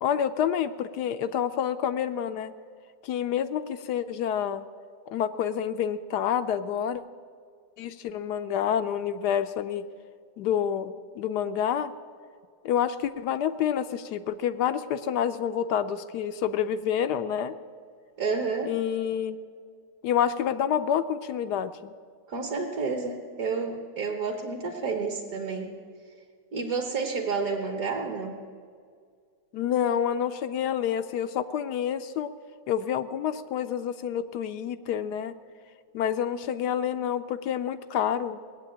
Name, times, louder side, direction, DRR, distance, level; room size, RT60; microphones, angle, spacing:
voice 1, 0.0-2.5 3.0-4.7 5.1-7.0 7.8-9.9 10.4-11.9 12.6-17.5 18.7-19.4 20.0-21.9 29.5-32.3 32.7-35.4 35.9-38.4, left 9 dB, 75° left, 11 dB, 1.1 m, -28 dB
voice 2, 18.2-18.7 22.3-25.7 26.5-28.4, right 4 dB, 55° right, 3 dB, 1.6 m, -30 dB
18.5 x 8.2 x 8.6 m, 2.1 s
omnidirectional pair, 1.9 m